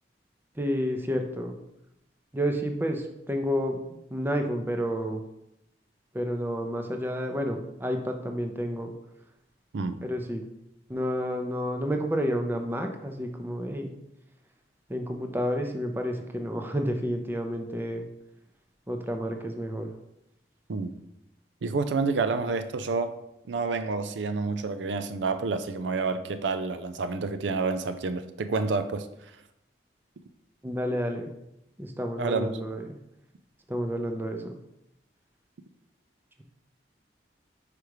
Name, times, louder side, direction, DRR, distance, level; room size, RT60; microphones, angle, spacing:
voice 1, 0.6-1.5 2.3-3.8 4.1-5.2 6.1-8.9 10.0-10.4 10.9-13.9 14.9-18.1 18.9-19.9 30.6-31.3 31.8-33.0 33.7-34.6, equal, 10° right, 0.5 m, -30 dB
voice 2, 9.7-10.0 20.7-21.0 21.6-23.2 23.5-29.1 32.2-32.5, right 4 dB, 80° right, 0.4 m, -29 dB
5.0 x 4.7 x 4.7 m
head